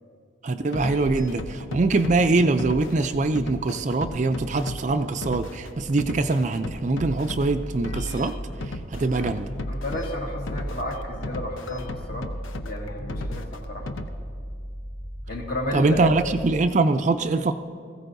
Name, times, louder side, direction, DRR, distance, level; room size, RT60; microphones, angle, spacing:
voice 1, 0.4-8.4 8.9-9.5 15.7-17.5, right 3 dB, 35° right, 9 dB, 0.4 m, -23 dB
sound 1, 0.6-14.1, left 1 dB, 75° left, 0.7 m, -35 dB
sound 2, 6.6-16.7, equal, 20° left, 0.9 m, -37 dB
voice 2, 9.0-9.3 9.6-12.3 12.6-13.9 15.3-16.1, left 1 dB, 50° left, 0 dB, 1.7 m, -32 dB
20.0 x 15.0 x 2.6 m, 2.2 s
head